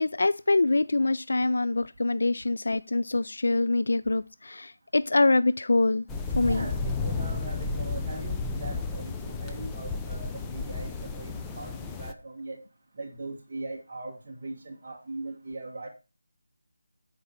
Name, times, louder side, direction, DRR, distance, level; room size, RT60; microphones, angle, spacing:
voice 1, 0.0-6.1 6.4-6.7, left 2 dB, 70° left, 0.4 m, -25 dB
sound 1, 6.1-12.1, left 4 dB, 5° left, 0.5 m, -32 dB
voice 2, 6.4-11.7 12.0-12.6 13.0-15.9, right 2 dB, 30° right, 1.5 m, -40 dB
8.9 x 4.7 x 5.8 m
figure-of-eight pair, 175°, 0 cm